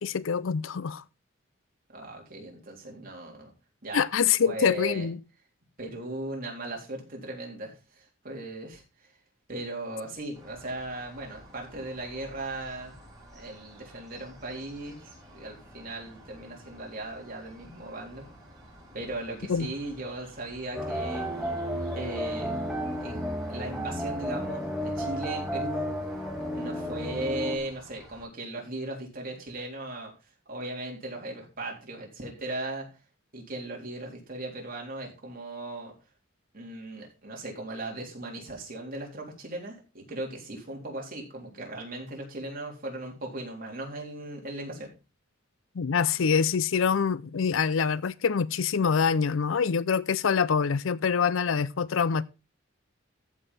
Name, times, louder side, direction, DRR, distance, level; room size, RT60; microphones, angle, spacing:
voice 1, 0.0-1.0 3.9-5.2 19.5-19.7 45.8-52.2, left 6 dB, 75° left, 0.5 m, -25 dB
voice 2, 1.9-3.5 3.8-4.0 4.4-5.1 5.8-9.1 9.5-13.0 13.3-15.0 15.3-18.3 18.9-21.3 21.9-22.6 23.0-23.2 23.5-25.9 26.5-30.1 30.5-32.9 33.3-35.9 36.5-44.9, right 2 dB, 45° right, 3.6 m, -37 dB
sound 1, 10.3-28.3, right 1 dB, 20° right, 4.8 m, -52 dB
sound 2, 20.7-27.6, equal, 5° right, 1.8 m, -32 dB
14.5 x 5.6 x 4.1 m
head